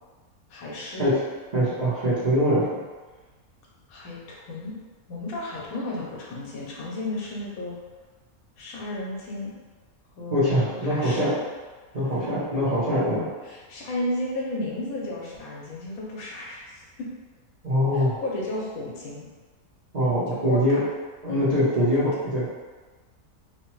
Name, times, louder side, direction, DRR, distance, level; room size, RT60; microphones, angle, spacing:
voice 1, 0.5-1.1 3.9-4.7 5.1-7.8 8.6-9.5 10.2-11.4 12.2-12.3 13.4-17.1 17.9-19.3 20.3-20.8 21.3-21.8, left 1 dB, 75° left, -3 dB, 1.1 m, -33 dB
voice 2, 1.5-2.8 10.3-11.3 11.9-13.3 17.6-18.2 19.9-20.8 21.2-22.5, equal, 40° right, -12 dB, 0.7 m, -23 dB
3.0 x 2.0 x 3.0 m, 1.3 s
omnidirectional pair, 1.5 m